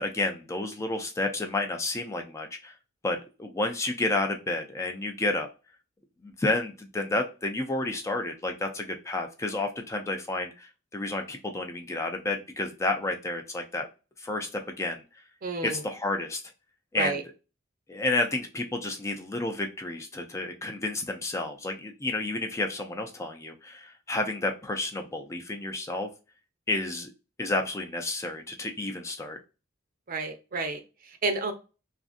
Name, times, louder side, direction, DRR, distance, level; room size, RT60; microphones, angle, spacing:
voice 1, 0.0-2.7 3.0-5.5 6.2-13.9 14.2-15.0 15.6-16.4 16.9-17.2 17.9-26.1 26.7-27.1 27.4-29.4, left 2 dB, 15° left, 4 dB, 0.3 m, -30 dB
voice 2, 15.4-15.8 16.9-17.2 30.1-31.5, right 3 dB, 45° right, 6 dB, 0.5 m, -31 dB
2.5 x 2.5 x 2.3 m, 0.31 s
head